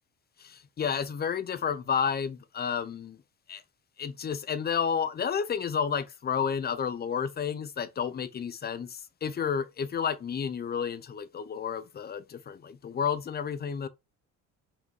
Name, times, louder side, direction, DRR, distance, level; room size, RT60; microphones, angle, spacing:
voice 1, 0.4-3.2 3.5-3.6 4.0-13.9, left 7 dB, 30° left, 0.8 m, -31 dB
5.3 x 5.1 x 4.7 m
cardioid pair, 130°, 31 cm